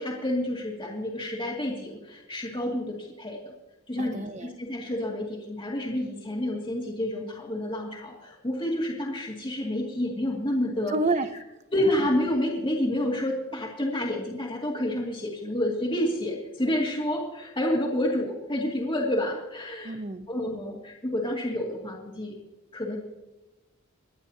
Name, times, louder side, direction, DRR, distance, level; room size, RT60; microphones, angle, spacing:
voice 1, 0.0-3.5 3.9-10.9 11.7-19.9 20.3-22.3 22.7-23.0, left 1 dB, 25° left, -4 dB, 2.2 m, -29 dB
voice 2, 4.0-4.5 10.9-11.3 12.0-12.1 19.8-20.3, right 3 dB, 35° right, 11 dB, 0.7 m, -29 dB
26.5 x 10.0 x 2.8 m, 1.0 s
head